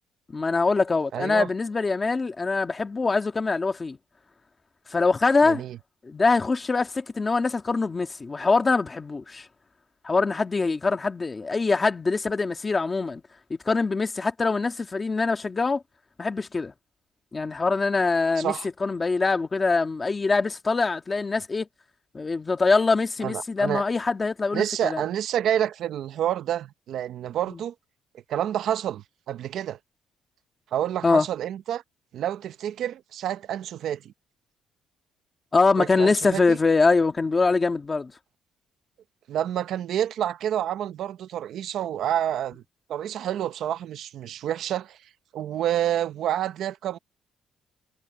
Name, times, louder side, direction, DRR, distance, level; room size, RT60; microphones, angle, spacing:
voice 1, 0.3-4.0 4.9-5.6 6.0-9.5 10.0-13.2 13.5-15.8 16.2-16.7 17.3-18.5 18.8-21.7 22.1-25.0 27.5-27.6 31.0-31.3 35.5-38.1, left 3 dB, 20° left, 1.7 m, -23 dB
voice 2, 1.1-1.5 5.4-5.8 18.4-18.7 23.2-23.8 24.5-27.7 28.3-29.8 30.7-31.8 32.1-34.1 35.8-36.6 39.3-42.6 42.9-45.0 45.3-47.0, right 10 dB, 55° right, 0.7 m, -28 dB
cardioid pair, 180°, 0 cm